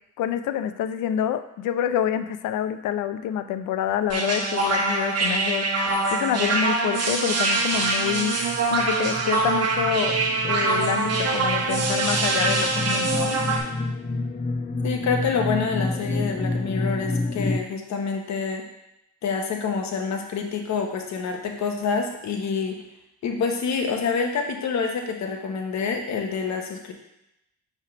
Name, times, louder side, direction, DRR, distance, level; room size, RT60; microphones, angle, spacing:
voice 1, 0.2-5.7 6.1-8.3 8.7-10.2 10.4-13.4, left 10 dB, 85° left, 11 dB, 0.5 m, -27 dB
sound 1, 4.1-13.6, right 3 dB, 55° right, 1.1 m, -24 dB
sound 2, 7.8-17.6, left 2 dB, 25° left, 0.7 m, -29 dB
voice 2, 14.8-18.6 19.2-22.8 23.2-26.9, left 5 dB, 65° left, 3 dB, 1.0 m, -27 dB
5.4 x 3.5 x 5.1 m, 0.85 s
cardioid pair, 90°, 30 cm